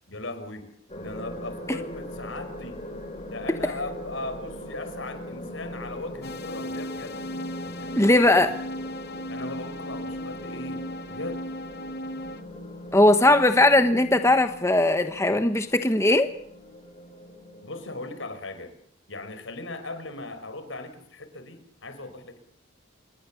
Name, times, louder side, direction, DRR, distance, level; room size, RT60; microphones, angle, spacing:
voice 1, 0.1-0.7 0.9-2.8 3.3-7.2 7.6-8.4 9.3-11.4 17.6-18.7 19.1-22.4, left 2 dB, 70° left, 10 dB, 4.8 m, -38 dB
sound 1, 0.9-18.4, left 1 dB, 30° left, 5.8 m, -40 dB
sound 2, 6.2-12.4, left 1 dB, 55° left, 1.4 m, -36 dB
voice 2, 8.0-8.5 12.9-16.3, left 1 dB, 15° left, 8 dB, 1.2 m, -19 dB
27.5 x 20.5 x 7.1 m, 0.65 s
head